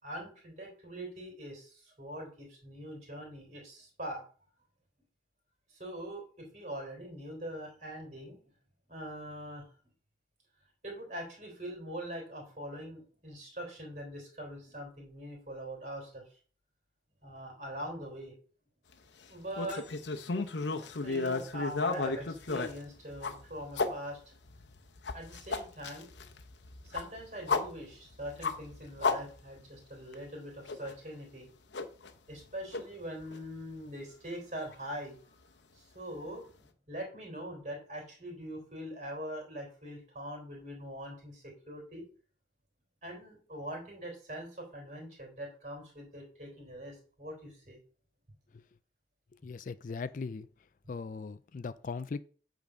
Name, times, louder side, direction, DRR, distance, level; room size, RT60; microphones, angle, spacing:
voice 1, 0.0-4.2 5.7-8.4 8.9-9.7 10.8-16.2 17.2-18.3 19.3-19.8 21.0-24.4 25.1-26.1 26.8-31.5 32.3-35.2 35.7-42.0 43.0-47.8, equal, 40° right, 3.4 m, -43 dB
sound 1, 19.6-23.9 24.4-29.8 30.1-30.2 30.7-30.9 31.7-32.4 32.7-32.8 33.3-33.4 34.7-34.8, left 4 dB, 85° left, 0.8 m, -34 dB
voice 2, 49.4-50.5 50.9-52.2, left 4 dB, 45° left, 0.3 m, -39 dB
8.6 x 3.9 x 6.2 m
head